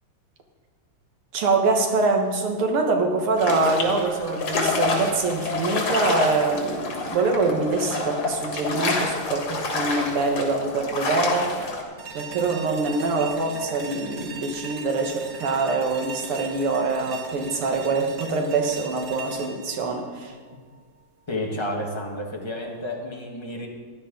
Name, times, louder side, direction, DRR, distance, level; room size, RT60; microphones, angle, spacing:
voice 1, 1.3-11.5 12.1-20.3, right 3 dB, 85° right, 3 dB, 2.3 m, -24 dB
sound 1, 3.4-11.8, left 3 dB, 90° left, 2.7 m, -28 dB
sound 2, 12.0-21.0, right 4 dB, 45° right, 1.0 m, -39 dB
voice 2, 21.3-23.7, left 1 dB, 15° left, 0 dB, 1.2 m, -31 dB
15.5 x 10.5 x 3.8 m, 1.6 s
omnidirectional pair, 2.4 m